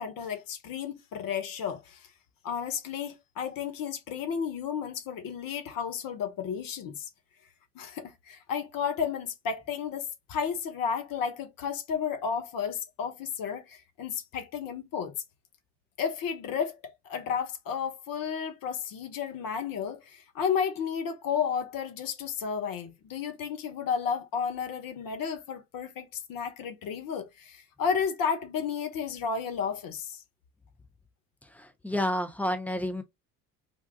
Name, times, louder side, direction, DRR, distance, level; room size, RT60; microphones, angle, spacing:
voice 1, 0.0-2.1 2.4-7.1 7.7-15.1 16.0-16.8 17.0-30.2, left 7 dB, 45° left, 0.9 m, -32 dB
voice 2, 31.8-33.0, left 1 dB, 5° left, 0.6 m, -29 dB
3.8 x 2.4 x 2.2 m
figure-of-eight pair, 55°, 47 cm